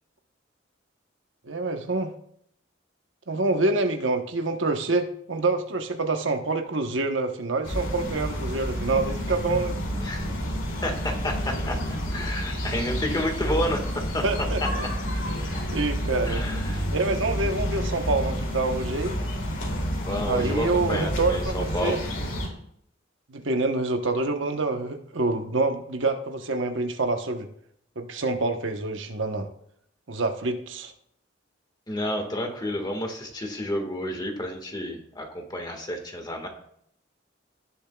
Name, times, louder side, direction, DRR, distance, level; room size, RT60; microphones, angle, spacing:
voice 1, 1.4-2.1 3.3-9.8 14.2-14.9 15.7-16.4 16.9-19.2 20.3-22.0 23.3-27.5 28.0-29.5 30.1-30.9, right 3 dB, 70° right, 5 dB, 1.1 m, -26 dB
sound 1, 7.6-22.5, equal, 70° left, 2.8 m, -29 dB
voice 2, 10.0-10.3 10.8-14.2 14.6-14.7 16.2-16.8 20.0-22.0 31.9-36.5, left 1 dB, 20° left, 3 dB, 1.7 m, -30 dB
18.0 x 7.1 x 2.3 m, 0.68 s
head